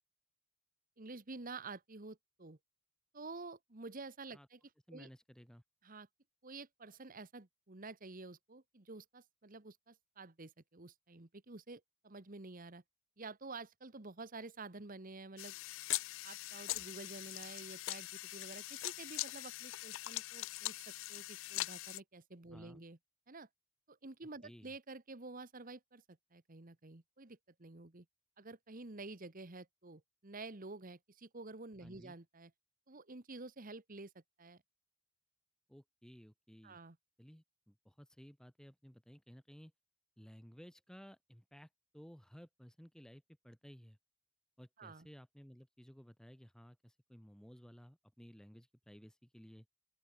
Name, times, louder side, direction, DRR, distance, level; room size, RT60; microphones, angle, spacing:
voice 1, 1.0-2.6 3.1-4.6 4.9-5.1 5.8-6.1 6.4-12.8 13.2-15.6 16.2-23.0 23.3-23.5 23.9-28.0 28.4-32.5 32.9-34.6 36.6-37.0 44.8-45.1, right 3 dB, 40° right, 1.2 m, -50 dB
voice 2, 4.9-5.6 22.5-22.8 24.4-24.7 31.8-32.1 35.7-36.8 37.2-39.7 40.2-44.0 44.6-49.7, equal, 5° left, 0.9 m, -57 dB
sound 1, 15.4-22.0, left 18 dB, 60° left, 0.3 m, -42 dB
open air
head